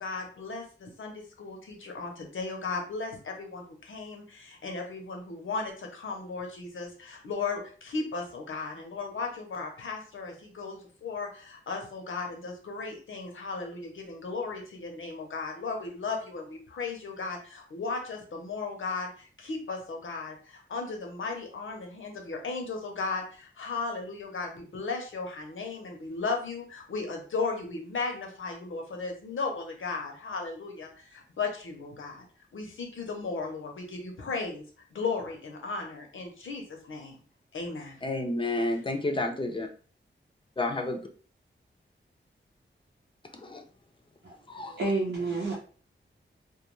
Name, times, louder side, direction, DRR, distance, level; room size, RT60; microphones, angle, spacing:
voice 1, 0.0-32.2 32.5-34.6 34.9-37.2 37.5-38.0, left 4 dB, 85° left, 2 dB, 0.7 m, -36 dB
voice 2, 38.0-39.7 40.6-41.0 43.3-43.6 44.5-44.8, left 2 dB, 25° left, 4 dB, 0.4 m, -30 dB
voice 3, 44.2-45.5, right 3 dB, 75° right, -5 dB, 0.7 m, -30 dB
2.2 x 2.2 x 3.0 m, 0.41 s
wide cardioid pair, 105°, 20 cm